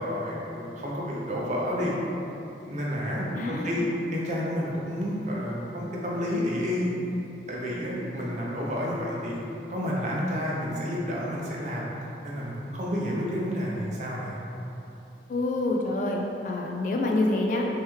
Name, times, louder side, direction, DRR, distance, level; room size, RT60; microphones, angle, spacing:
voice 1, 0.0-1.9 2.6-3.8 4.1-7.0 7.5-9.4 9.7-11.9 12.2-14.4, equal, 40° right, -4 dB, 0.6 m, -30 dB
voice 2, 1.6-2.0 3.3-3.9 15.3-17.7, left 2 dB, 45° left, 0 dB, 0.3 m, -27 dB
3.4 x 3.1 x 3.1 m, 2.9 s
head